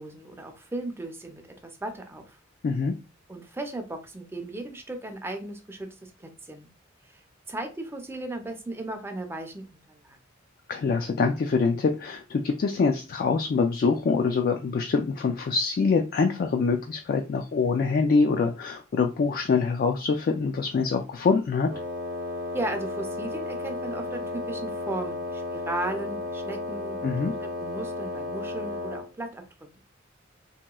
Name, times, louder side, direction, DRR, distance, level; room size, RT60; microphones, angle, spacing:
voice 1, 0.0-2.4 3.3-6.7 7.5-10.2 22.5-27.1 27.4-29.4, right 2 dB, 10° right, 5 dB, 0.5 m, -36 dB
voice 2, 2.6-2.9 10.7-21.7 27.0-27.3, left 4 dB, 50° left, 4 dB, 0.3 m, -24 dB
Wind instrument woodwind instrument, 21.7-29.1, left 2 dB, 60° right, 0.6 m, -33 dB
3.0 x 2.9 x 2.2 m, 0.32 s
head